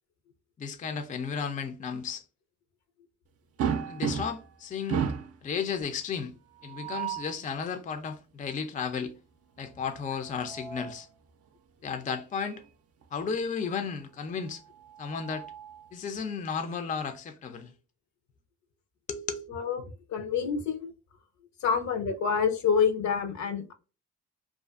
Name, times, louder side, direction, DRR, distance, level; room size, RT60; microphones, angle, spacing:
voice 1, 0.6-2.2 3.9-5.1 5.4-6.3 6.6-9.1 9.6-11.1 11.8-12.6 13.1-14.6 15.0-15.5 15.9-17.7 19.1-19.5, left 6 dB, 25° left, 0.4 m, -34 dB
sound 1, 3.6-4.5 4.9-5.4 6.6-7.4 10.0-11.0 12.5-12.6 13.0-13.1 14.6-15.9, right 7 dB, 50° right, 0.5 m, -34 dB
voice 2, 19.5-20.9 21.6-23.7, left 6 dB, 70° left, 0.7 m, -27 dB
2.5 x 2.4 x 2.3 m
cardioid pair, 90°, 30 cm